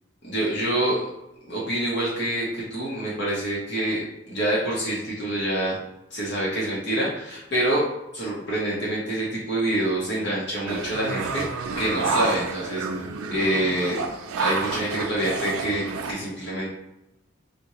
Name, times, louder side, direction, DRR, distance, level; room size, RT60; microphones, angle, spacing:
voice 1, 0.2-1.0 1.5-5.8 6.1-7.9 8.1-11.5 11.8-12.8 13.3-14.0 14.4-16.7, right 1 dB, 55° left, -6 dB, 0.8 m, -26 dB
sound 1, 10.7-16.1, right 4 dB, 85° right, 0.4 m, -29 dB
3.7 x 2.2 x 2.9 m, 0.92 s
head